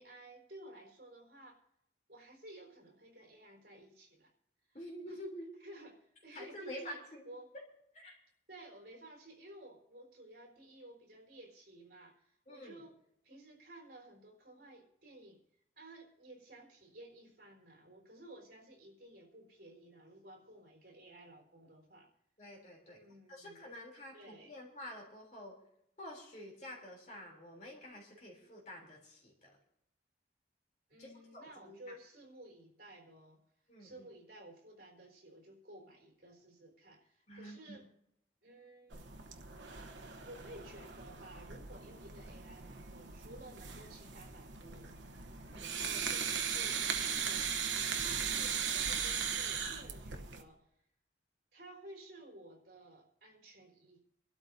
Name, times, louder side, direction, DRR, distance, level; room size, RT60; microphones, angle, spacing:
voice 1, 0.0-1.6 2.1-4.3 4.7-5.2 5.6-7.0 7.2-7.5 8.5-13.0 13.2-15.4 15.8-22.1 22.8-23.7 24.1-24.5 30.9-33.4 33.8-37.9 38.4-39.3 40.2-44.9 45.6-47.5 48.0-50.7 51.5-54.0, right 1 dB, 60° right, -1 dB, 4.3 m, -54 dB
voice 2, 4.7-5.5 6.3-7.2 7.9-8.2 12.5-12.8 22.4-23.0 23.3-25.5 26.0-29.5 31.0-31.8 33.7-34.1 37.3-37.8 45.5-45.7, equal, 40° left, -1 dB, 3.3 m, -48 dB
sound 1, 38.9-50.4, right 7 dB, 90° right, 1.0 m, -38 dB
26.0 x 12.5 x 2.7 m, 0.76 s
head